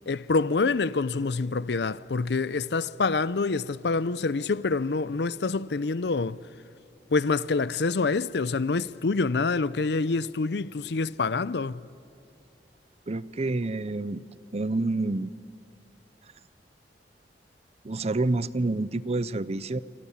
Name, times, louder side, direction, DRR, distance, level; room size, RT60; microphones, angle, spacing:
voice 1, 0.1-6.4 7.1-11.8, left 4 dB, 70° left, 0.6 m, -26 dB
voice 2, 13.1-14.2 14.5-15.3 17.8-19.8, right 2 dB, 35° right, 0.6 m, -28 dB
28.0 x 27.0 x 7.3 m
head